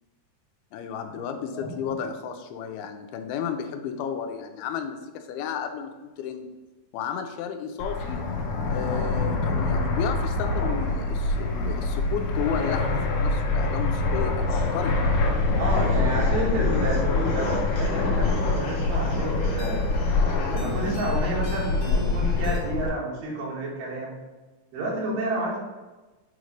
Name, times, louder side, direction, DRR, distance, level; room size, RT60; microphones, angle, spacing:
voice 1, 0.7-6.5 6.9-8.3 8.7-15.0, left 7 dB, 90° left, 6 dB, 2.6 m, -33 dB
Fixed-wing aircraft airplane, 7.8-22.9, left 3 dB, 75° left, 2.1 m, -25 dB
sound 1, 14.5-22.6, left 1 dB, 45° left, 2.1 m, -40 dB
voice 2, 15.6-19.8 20.5-24.2 24.7-25.6, right 2 dB, 85° right, -3 dB, 3.7 m, -30 dB
8.7 x 3.2 x 5.1 m, 1.2 s
omnidirectional pair, 4.4 m